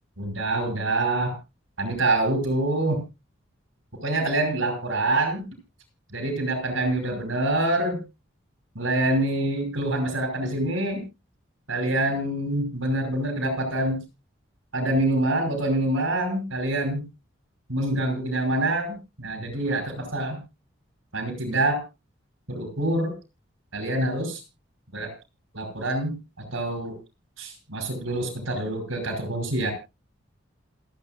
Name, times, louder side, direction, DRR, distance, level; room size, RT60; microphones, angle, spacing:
voice 1, 0.2-1.3 1.8-3.0 4.0-5.4 6.1-8.0 8.8-11.1 11.7-14.0 14.7-17.1 17.7-20.4 21.1-21.8 22.5-23.1 23.7-24.4 24.9-25.1 25.5-27.0 27.4-29.7, right 1 dB, 85° right, 5 dB, 5.5 m, -26 dB
27.5 x 9.4 x 2.3 m, 0.26 s
head